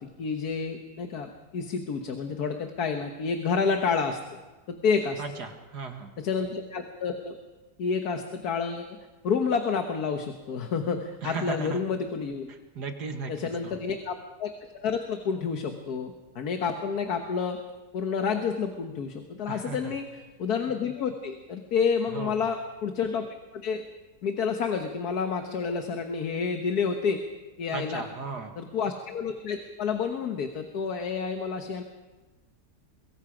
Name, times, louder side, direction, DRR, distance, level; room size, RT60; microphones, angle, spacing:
voice 1, 0.0-4.4 4.7-5.2 6.2-7.4 7.8-9.0 9.2-12.5 13.3-17.6 17.9-20.0 20.4-23.3 23.5-23.8 24.2-27.2 27.6-28.0 28.6-31.8, left 5 dB, 70° left, 5 dB, 1.7 m, -29 dB
voice 2, 5.2-6.1 11.2-11.8 12.5-13.3 13.6-13.8 19.5-19.9 22.1-22.3 27.7-28.5, right 5 dB, 85° right, 5 dB, 2.4 m, -36 dB
23.0 x 23.0 x 5.1 m, 1.2 s
omnidirectional pair, 1.7 m